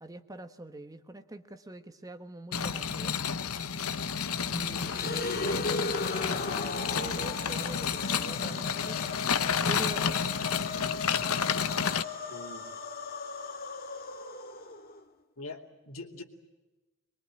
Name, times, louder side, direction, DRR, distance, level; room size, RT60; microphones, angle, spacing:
voice 1, 0.0-3.2 4.4-9.0 9.7-10.2, right 2 dB, 15° right, 9 dB, 1.2 m, -44 dB
sound 1, 2.5-12.0, left 6 dB, 85° left, 1.0 m, -31 dB
sound 2, 4.8-15.0, left 3 dB, 45° left, 2.0 m, -37 dB
voice 2, 12.3-12.7 15.4-16.2, left 2 dB, 70° left, 4 dB, 2.7 m, -43 dB
23.0 x 23.0 x 8.8 m, 1.1 s
head